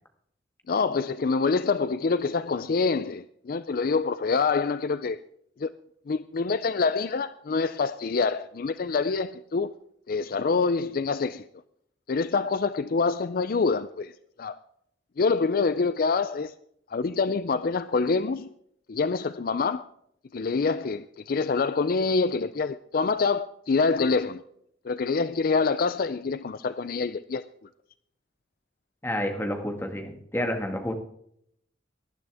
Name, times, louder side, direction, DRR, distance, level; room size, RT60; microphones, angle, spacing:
voice 1, 0.7-5.2 5.6-5.7 6.1-9.7 10.1-11.4 12.1-14.1 14.4-14.6 15.2-16.5 16.9-18.5 18.9-19.8 20.3-24.4 24.8-27.4, left 4 dB, 50° left, 0.4 m, -26 dB
voice 2, 29.0-30.9, equal, 15° left, 1.9 m, -29 dB
18.5 x 11.5 x 3.5 m
head